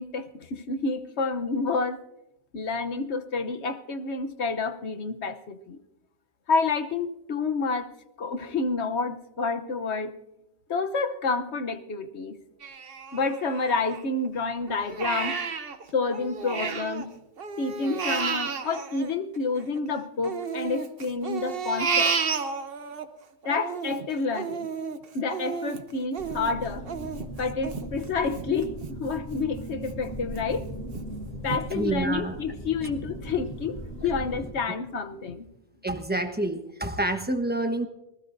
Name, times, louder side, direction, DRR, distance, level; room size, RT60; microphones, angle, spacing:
voice 1, 0.0-2.0 2.5-5.8 6.5-7.9 8.2-10.1 10.7-12.4 13.1-15.3 15.9-17.1 17.6-22.1 23.4-24.7 25.1-26.8 27.4-30.6 31.4-33.8 34.0-35.5, left 4 dB, 75° left, 8 dB, 1.2 m, -29 dB
Crying sobbing, 12.6-14.3 14.7-17.1 17.4-19.8 20.2-23.0 23.4-28.9 29.3-29.4 29.9-30.4 30.9-31.0 31.5-31.6, right 5 dB, 60° right, 1.1 m, -32 dB
sound 1, 26.2-34.5, equal, 35° left, 7.4 m, -38 dB
voice 2, 31.7-32.3 34.7-34.8 35.8-37.9, right 2 dB, 10° right, 6 dB, 1.1 m, -28 dB
26.0 x 19.5 x 2.6 m, 0.90 s
omnidirectional pair, 1.1 m